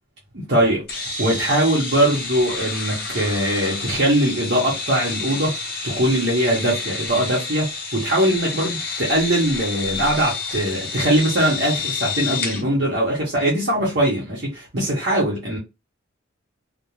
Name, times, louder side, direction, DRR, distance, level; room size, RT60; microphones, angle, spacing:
voice 1, 0.3-5.5 5.8-15.6, right 1 dB, 55° right, 0.9 m, -21 dB
sound 1, 0.9-12.6, left 4 dB, 50° left, 0.9 m, -29 dB
2.4 x 2.1 x 2.9 m
head